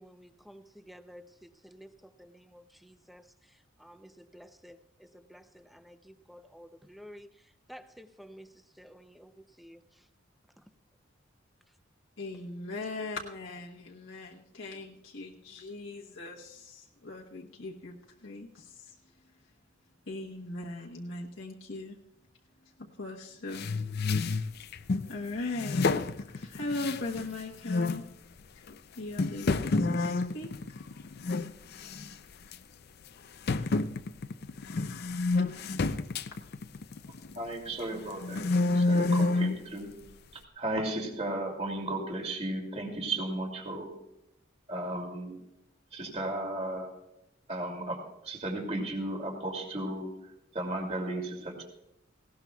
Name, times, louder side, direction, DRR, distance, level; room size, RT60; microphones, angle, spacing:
voice 1, 0.0-3.2 3.8-7.3 7.7-8.5 8.8-9.3 9.6-9.8, equal, ahead, 10 dB, 0.6 m, -52 dB
voice 2, 12.2-18.0 18.2-18.9 20.1-22.0 22.8-23.7 25.1-28.0 28.5-28.6 28.9-30.5 35.3-35.4, left 2 dB, 80° left, -2 dB, 1.2 m, -39 dB
sound 1, 23.5-25.1 25.6-27.3 27.7-28.1 28.7-28.8 29.2-31.5 31.8-32.1 32.5-32.6 33.5-37.5 37.9-39.6, left 3 dB, 55° left, 0.5 m, -29 dB
voice 3, 37.1-38.4 38.7-39.9 40.3-43.9 44.7-45.4 45.9-46.9 47.5-48.0 48.2-50.1 50.5-51.6, right 1 dB, 35° right, 2 dB, 2.6 m, -35 dB
18.5 x 17.5 x 2.3 m, 0.84 s
head